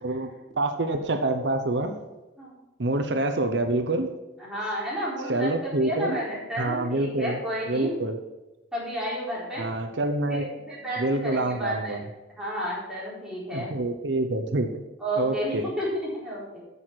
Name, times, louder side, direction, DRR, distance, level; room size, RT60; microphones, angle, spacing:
voice 1, 0.0-2.0 2.8-4.1 5.3-6.2 6.6-7.4 7.7-8.2 9.6-10.4 11.0-12.0 13.5-14.8 15.2-15.7, right 2 dB, 80° right, 6 dB, 0.9 m, -26 dB
voice 2, 4.4-7.9 8.7-9.7 10.3-12.1 12.3-13.8 15.0-16.6, equal, 5° right, -8 dB, 4.1 m, -32 dB
9.6 x 6.4 x 5.9 m, 1.1 s
head